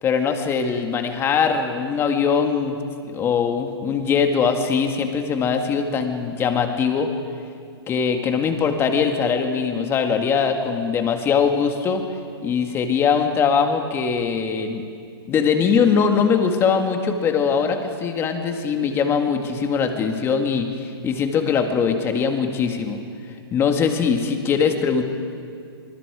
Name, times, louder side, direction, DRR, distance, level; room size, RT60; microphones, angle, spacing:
voice 1, 0.0-2.8 3.0-7.1 7.9-12.0 12.4-14.8 15.3-23.0 23.5-25.0, left 6 dB, 20° left, 5 dB, 1.8 m, -21 dB
25.5 x 23.5 x 4.9 m, 2.4 s
hypercardioid pair, 150°, 13 cm